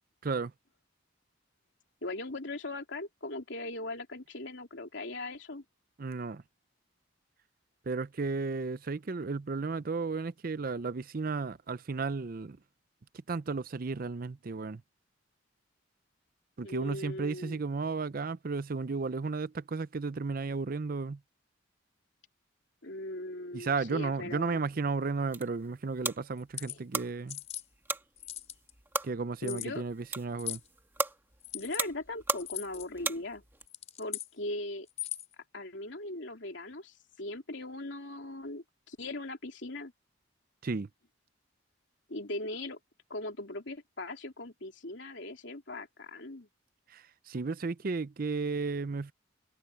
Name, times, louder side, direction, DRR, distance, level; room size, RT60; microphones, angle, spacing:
voice 1, 2.0-5.6 16.6-17.6 22.8-24.6 26.7-26.8 29.4-29.8 31.5-33.4 34.0-34.9 35.5-39.9 42.1-42.8 43.1-46.5, left 2 dB, 70° left, 3.1 m, -39 dB
voice 2, 6.0-6.4 7.9-12.6 13.3-14.8 16.6-21.2 23.5-27.4 29.0-30.6 40.6-40.9 46.9-49.1, right 4 dB, 50° right, 0.5 m, -34 dB
sound 1, 25.0-33.7, right 3 dB, 10° right, 1.5 m, -38 dB
sound 2, 26.4-26.8 27.3-27.6 28.2-28.7 29.4-29.7 30.4-30.7 31.4-31.8 32.4-32.9 33.6-34.3 34.9-35.3, left 13 dB, 35° left, 3.8 m, -39 dB
head